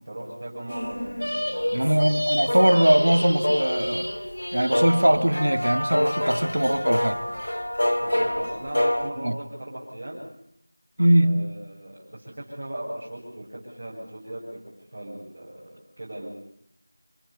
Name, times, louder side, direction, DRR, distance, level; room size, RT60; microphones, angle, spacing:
voice 1, 0.0-2.0 8.0-10.2 11.2-14.6 14.9-16.3, right 1 dB, 30° right, -8 dB, 7.7 m, -38 dB
sound 1, 0.7-9.1, left 1 dB, 75° left, 2.5 m, -27 dB
voice 2, 1.7-4.1 4.5-7.2 9.2-9.4 11.0-11.5, right 1 dB, 70° right, 9 dB, 2.3 m, -21 dB
27.5 x 17.5 x 8.7 m, 0.76 s
figure-of-eight pair, 175°, 0 cm